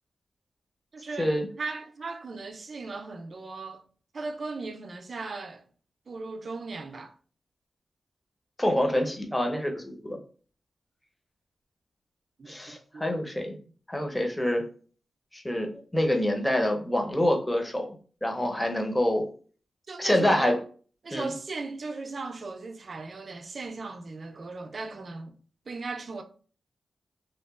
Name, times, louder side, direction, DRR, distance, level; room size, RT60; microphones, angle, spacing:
voice 1, 0.9-3.8 4.1-5.6 6.1-7.1 12.4-13.2 19.9-20.6 21.0-25.3 25.7-26.2, right 3 dB, 60° right, 0.4 m, -37 dB
voice 2, 8.6-10.2 12.5-13.5 13.9-14.6 15.3-18.0 18.2-19.2 20.0-20.6 21.1-21.3, left 1 dB, 15° left, 0.6 m, -26 dB
2.8 x 2.2 x 2.4 m
cardioid pair, 55°, 0 cm